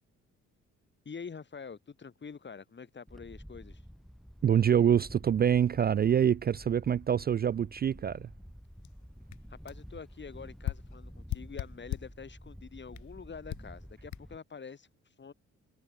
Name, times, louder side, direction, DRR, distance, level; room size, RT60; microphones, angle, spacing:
voice 1, 1.0-3.8 9.5-15.3, left 5 dB, 35° left, 5.8 m, -46 dB
Wind, 3.1-14.4, equal, ahead, 1.5 m, -50 dB
voice 2, 4.4-8.3, right 9 dB, 35° right, 0.4 m, -25 dB
sound 1, 8.8-8.9 9.3-9.4 9.7-9.8 10.6-12.2 12.9-13.1 13.5-13.7 14.1-14.2, left 15 dB, 75° left, 0.7 m, -38 dB
cardioid pair, 90°, 30 cm